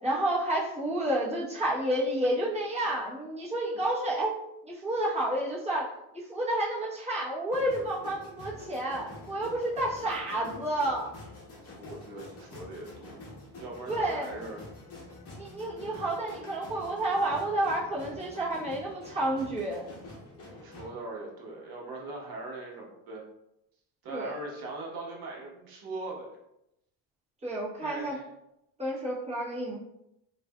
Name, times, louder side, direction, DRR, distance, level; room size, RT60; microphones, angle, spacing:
voice 1, 0.0-4.3 4.6-11.1 13.9-14.3 15.3-19.8 24.1-24.3 27.4-28.2 28.8-29.8, right 1 dB, 15° right, -7 dB, 1.0 m, -30 dB
sound 1, 7.5-20.9, left 2 dB, 30° left, 0.9 m, -47 dB
voice 2, 11.7-13.1 13.6-14.6 20.4-23.3 24.0-26.3 27.8-28.3, right 2 dB, 50° right, -2 dB, 1.0 m, -40 dB
3.2 x 2.5 x 2.2 m, 0.83 s
cardioid pair, 125°, 47 cm